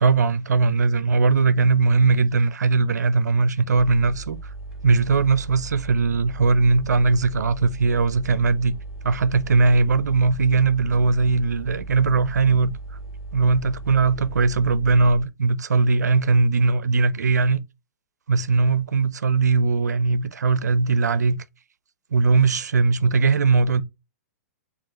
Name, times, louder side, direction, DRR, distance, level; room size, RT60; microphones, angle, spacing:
voice 1, 0.0-4.4 4.8-8.7 9.0-12.7 13.3-17.6 18.3-21.4 22.1-23.8, right 4 dB, 85° right, 0.4 m, -19 dB
sound 1, 3.7-15.2, right 2 dB, 5° right, 0.8 m, -37 dB
5.3 x 2.4 x 2.9 m
hypercardioid pair, 120°, 9 cm